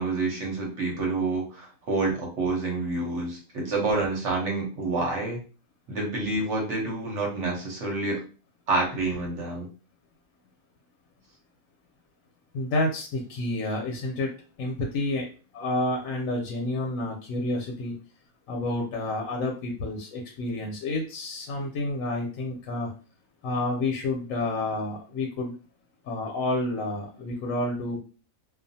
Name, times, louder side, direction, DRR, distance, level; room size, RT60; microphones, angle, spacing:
voice 1, 0.0-5.4 5.9-8.2 8.7-9.7, right 3 dB, 60° right, -1 dB, 1.1 m, -28 dB
voice 2, 12.5-14.3 14.6-15.3 15.5-18.0 18.5-22.9 23.4-25.5 26.0-28.0, left 2 dB, 70° left, 0 dB, 1.0 m, -29 dB
2.4 x 2.4 x 2.6 m, 0.36 s
omnidirectional pair, 1.6 m